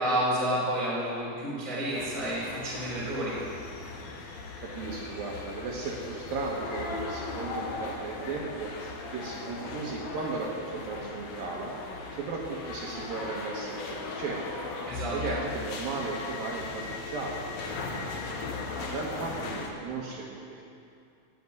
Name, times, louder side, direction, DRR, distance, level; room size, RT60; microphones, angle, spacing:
voice 1, 0.0-3.4 14.8-15.2, right 1 dB, 20° right, -7 dB, 4.0 m, -30 dB
sound 1, 1.9-19.7, left 3 dB, 70° left, 1.7 m, -38 dB
voice 2, 4.6-11.7 12.1-14.4 15.1-17.5 17.8-18.2 18.8-20.6, right 3 dB, 65° right, -3 dB, 2.8 m, -36 dB
17.5 x 6.0 x 9.6 m, 2.6 s
omnidirectional pair, 4.8 m